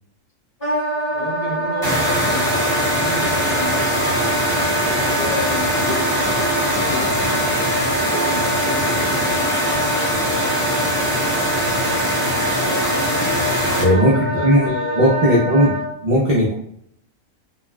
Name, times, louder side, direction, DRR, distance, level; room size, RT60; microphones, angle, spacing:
Wind instrument woodwind instrument, 0.6-15.9, right 1 dB, 25° left, 1.5 m, -25 dB
voice 1, 1.1-10.0 13.4-15.3, left 2 dB, 60° left, -4 dB, 0.5 m, -32 dB
sound 1, 1.8-13.8, equal, 20° right, 0.8 m, -22 dB
voice 2, 13.8-14.1 14.4-14.7 14.9-16.5, equal, 45° right, -6 dB, 0.5 m, -16 dB
3.3 x 2.2 x 2.3 m, 0.70 s
omnidirectional pair, 1.4 m